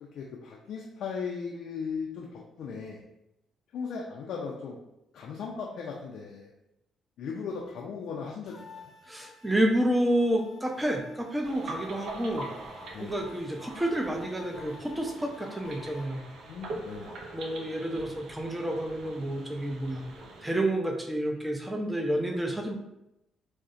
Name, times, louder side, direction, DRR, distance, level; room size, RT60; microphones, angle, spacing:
voice 1, 0.0-3.0 3.7-4.8 5.1-6.5 7.2-8.9 12.9-13.2 16.5-17.2, left 5 dB, 65° left, -2 dB, 0.3 m, -37 dB
sound 1, 8.5-16.1, left 6 dB, 25° left, 0.7 m, -52 dB
voice 2, 9.1-12.5 13.0-16.2 17.3-20.0 20.4-22.7, right 1 dB, 10° right, 2 dB, 0.5 m, -29 dB
sound 2, 11.4-20.6, right 2 dB, 65° right, 0.4 m, -43 dB
2.5 x 2.0 x 2.4 m, 0.86 s
hypercardioid pair, 50°, 0 cm